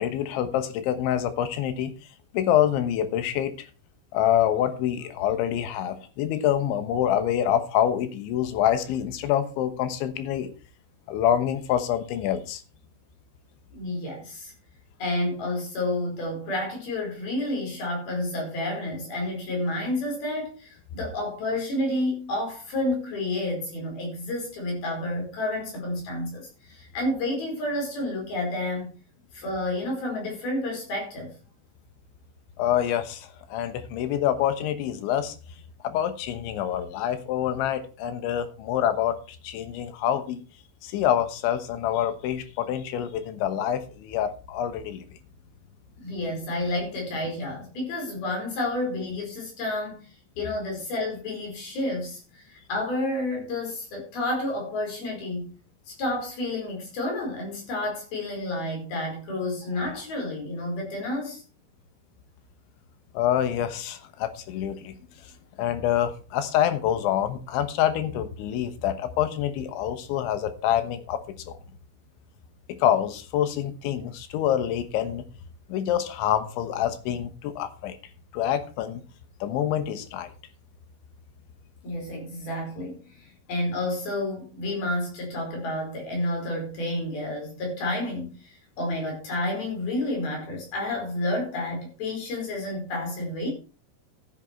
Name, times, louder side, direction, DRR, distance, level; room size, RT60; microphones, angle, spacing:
voice 1, 0.0-1.9 2.3-3.6 4.1-10.5 11.1-12.6 32.6-35.3 35.8-39.2 39.4-40.4 40.8-45.0 63.1-65.0 65.6-71.2 71.5-71.6 72.7-75.2 75.7-78.0 78.3-79.0 79.4-80.3, left 10 dB, 90° left, 10 dB, 3.6 m, -26 dB
voice 2, 13.7-14.5 15.0-28.9 29.3-31.3 46.0-50.0 50.4-55.5 55.9-61.4 81.8-83.0 83.5-93.5, left 1 dB, 55° left, 0 dB, 6.5 m, -30 dB
12.5 x 8.8 x 4.5 m, 0.35 s
omnidirectional pair, 5.2 m